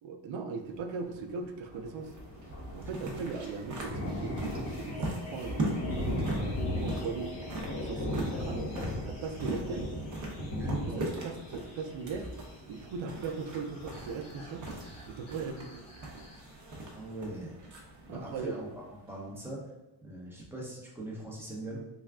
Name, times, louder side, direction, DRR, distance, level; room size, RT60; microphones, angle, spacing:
voice 1, 0.0-2.1 2.7-4.4 4.7-7.4 7.8-8.7 9.0-10.0 10.6-12.3 12.7-14.7 15.1-15.8 18.1-18.6, right 5 dB, 75° right, 6 dB, 0.6 m, -39 dB
Thunder, 1.4-1.5 1.7-14.3 14.8-14.9 15.2-15.3, left 1 dB, 30° left, 0.8 m, -37 dB
sound 1, 1.7-19.4, right 2 dB, 40° right, 0.8 m, -40 dB
sound 2, 2.9-17.0, left 3 dB, 60° left, 1.1 m, -49 dB
voice 2, 10.6-11.2 16.9-17.6 18.1-18.7 19.1-19.6 20.0-21.8, right 1 dB, 5° right, -4 dB, 0.8 m, -41 dB
3.4 x 2.3 x 3.5 m, 0.99 s
cardioid pair, 135°, 47 cm